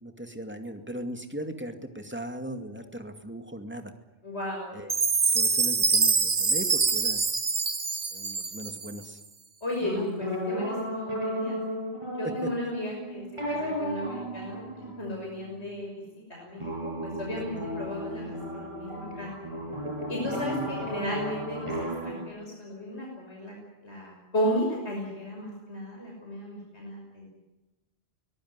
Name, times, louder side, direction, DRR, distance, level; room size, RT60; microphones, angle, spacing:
voice 1, 0.0-3.9 4.7-4.9 5.3-7.2 8.1-9.2 12.2-12.5 17.6-17.7 20.2-20.7, right 1 dB, 10° right, 6 dB, 2.3 m, -38 dB
voice 2, 4.2-4.7 9.6-11.6 12.2-15.9 16.3-19.4 20.1-21.7 22.0-23.5 23.8-27.3, equal, 85° left, -2 dB, 6.3 m, -34 dB
Chime, 4.9-9.1, right 4 dB, 40° right, 1.2 m, -25 dB
sound 1, 9.8-15.8 16.5-22.2, equal, 25° right, 7.6 m, -34 dB
24.0 x 18.0 x 9.7 m, 1.0 s
omnidirectional pair, 1.1 m